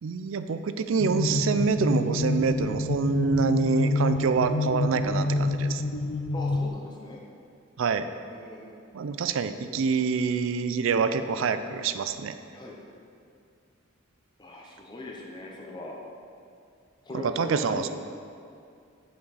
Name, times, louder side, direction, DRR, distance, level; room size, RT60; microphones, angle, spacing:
voice 1, 0.0-5.8 7.8-8.1 8.9-12.3 17.1-17.9, right 5 dB, 70° right, 11 dB, 0.4 m, -26 dB
sound 1, 1.0-6.7, left 2 dB, 65° left, 0.4 m, -27 dB
voice 2, 6.3-7.2 8.3-8.8 9.0-9.2 12.5-12.8 14.4-16.0 17.0-17.9, left 2 dB, 20° left, -2 dB, 0.7 m, -40 dB
7.7 x 5.9 x 4.1 m, 2.4 s
head